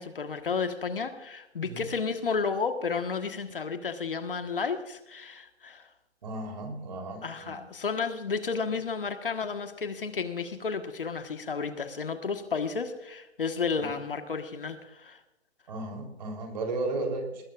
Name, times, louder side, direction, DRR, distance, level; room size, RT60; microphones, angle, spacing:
voice 1, 0.0-5.9 7.2-15.2, left 5 dB, 50° left, 8 dB, 1.5 m, -32 dB
voice 2, 6.2-7.5 13.8-13.9 15.7-17.4, right 2 dB, 40° right, 4 dB, 3.6 m, -34 dB
20.0 x 18.0 x 2.5 m, 0.93 s
figure-of-eight pair, 145°, 34 cm